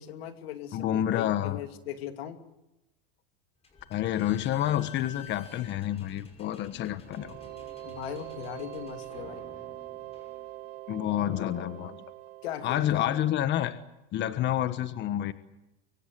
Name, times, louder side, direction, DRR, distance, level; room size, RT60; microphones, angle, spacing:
voice 1, 0.0-2.4 6.7-6.8 7.8-9.5 12.4-13.2, left 10 dB, 85° left, 7 dB, 2.7 m, -39 dB
voice 2, 0.7-1.6 3.9-7.4 10.9-12.0 12.6-13.8 14.1-15.3, left 12 dB, 40° left, 12 dB, 1.3 m, -29 dB
Slam / Squeak, 3.6-10.9, left 5 dB, 20° left, 5.9 m, -51 dB
sound 1, 7.0-13.7, right 15 dB, 75° right, 2.6 m, -44 dB
24.5 x 24.5 x 7.8 m, 0.94 s
supercardioid pair, 125°, 30 cm